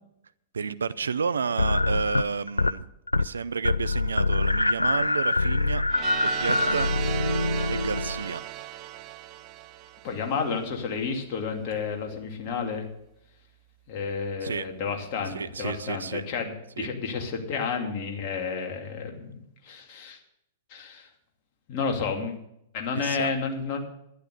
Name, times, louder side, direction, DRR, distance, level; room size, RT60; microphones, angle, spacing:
voice 1, 0.5-2.9 3.1-5.8 6.2-6.9 7.7-8.4 14.4-14.7 15.3-16.2 16.8-16.9 23.0-23.3, right 5 dB, 75° right, 15 dB, 0.6 m, -31 dB
sound 1, 1.6-2.8 3.1-3.4 3.6-8.4, left 2 dB, 90° left, 0.4 m, -25 dB
sound 2, 5.9-10.7, right 15 dB, 35° right, 0.7 m, -36 dB
voice 2, 10.0-12.9 13.9-20.2 20.7-21.1 21.7-22.4 22.7-23.8, left 5 dB, 45° left, 2 dB, 2.6 m, -31 dB
12.0 x 10.5 x 6.7 m, 0.79 s
figure-of-eight pair, 100°, 0 cm